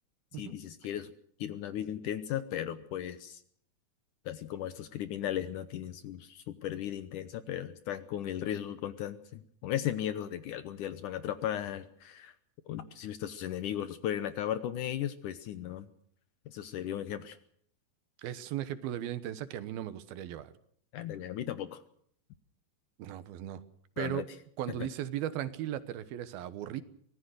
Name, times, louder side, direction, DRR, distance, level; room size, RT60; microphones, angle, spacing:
voice 1, 0.4-1.1 1.4-3.4 4.3-12.3 12.7-15.9 16.5-17.4 20.9-21.8 24.0-24.3, left 11 dB, 70° left, 12 dB, 2.1 m, -36 dB
voice 2, 18.2-20.5 23.0-23.6 24.0-24.2 24.6-26.8, right 12 dB, 75° right, 13 dB, 2.9 m, -37 dB
24.5 x 18.0 x 6.4 m, 0.64 s
omnidirectional pair, 4.4 m